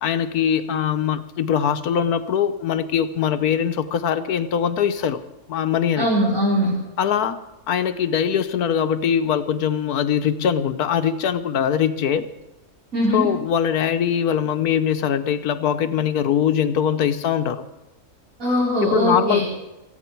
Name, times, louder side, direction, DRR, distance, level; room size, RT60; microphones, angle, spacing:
voice 1, 0.0-5.2 5.5-6.1 7.0-7.4 7.7-12.3 13.1-17.6 18.8-19.4, left 8 dB, 85° left, 10 dB, 1.4 m, -22 dB
voice 2, 6.0-6.7 12.9-13.3 18.4-19.4, equal, 60° right, -8 dB, 4.8 m, -20 dB
19.0 x 14.5 x 4.6 m, 1.0 s
omnidirectional pair, 1.6 m